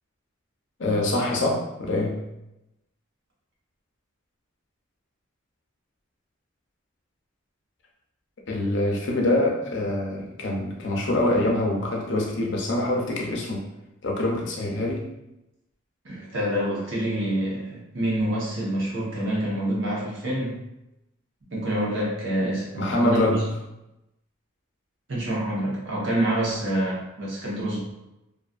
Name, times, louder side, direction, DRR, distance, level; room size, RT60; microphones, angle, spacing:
voice 1, 0.8-2.2 8.5-13.7 14.0-15.0 22.7-23.4, left 1 dB, 60° left, -1 dB, 0.5 m, -25 dB
voice 2, 16.0-20.6 21.5-23.5 25.1-27.8, right 1 dB, 65° right, -6 dB, 0.9 m, -27 dB
2.5 x 2.3 x 2.4 m, 0.91 s
head